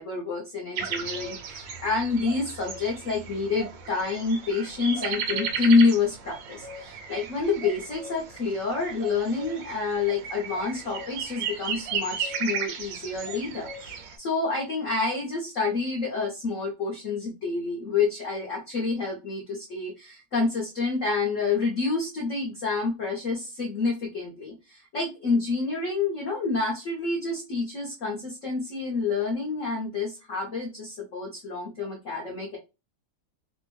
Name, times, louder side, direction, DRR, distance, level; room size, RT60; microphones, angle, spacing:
voice 1, 0.0-32.6, left 4 dB, 55° left, -3 dB, 0.9 m, -28 dB
sound 1, 0.8-14.2, right 6 dB, 70° right, 1.2 m, -35 dB
3.4 x 2.2 x 3.1 m, 0.27 s
omnidirectional pair, 2.3 m